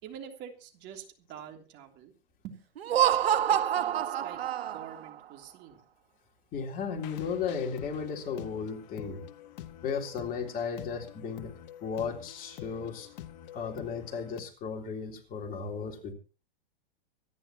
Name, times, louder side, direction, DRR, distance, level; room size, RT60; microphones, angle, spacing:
voice 1, 0.0-2.1 2.4-2.6 3.5-4.4 4.7-5.8, right 9 dB, 35° right, 4 dB, 3.1 m, -46 dB
Laughter, 2.8-5.1, right 10 dB, 80° right, 1.3 m, -27 dB
voice 2, 6.5-9.2 9.8-11.5 11.8-13.1 13.5-16.1, left 6 dB, 30° left, 1 dB, 3.7 m, -35 dB
sound 1, 7.0-14.4, left 11 dB, 45° left, 1.5 m, -46 dB
25.5 x 11.0 x 3.0 m, 0.34 s
hypercardioid pair, 130°, 30 cm